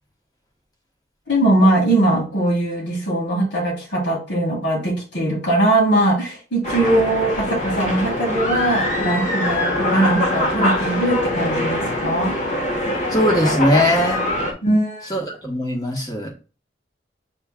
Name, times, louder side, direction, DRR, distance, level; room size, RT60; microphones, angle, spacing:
voice 1, 1.3-12.3 14.6-15.1, right 1 dB, 85° left, -3 dB, 2.0 m, -20 dB
Airport Ambience Mexico, 6.6-14.5, left 1 dB, 40° left, 1.1 m, -23 dB
voice 2, 13.1-14.3 15.1-16.3, left 1 dB, 20° left, 1 dB, 1.1 m, -20 dB
7.1 x 3.1 x 2.3 m, 0.33 s
head